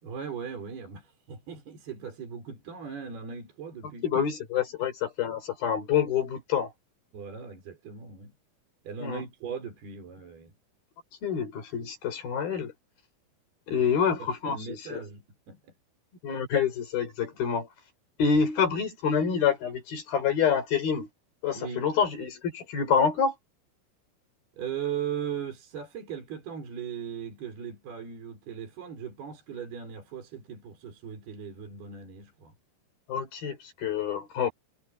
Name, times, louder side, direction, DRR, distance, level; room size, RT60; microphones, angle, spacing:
voice 1, 0.0-4.2 7.1-8.3 8.8-10.6 13.7-15.6 21.5-21.9 24.5-32.5, right 7 dB, 50° right, 7.0 m, -38 dB
voice 2, 4.0-6.7 9.0-9.2 11.2-12.7 13.7-15.0 16.2-17.7 18.2-21.1 21.4-23.3 33.1-34.5, left 7 dB, 50° left, 5.7 m, -27 dB
omnidirectional pair, 5.9 m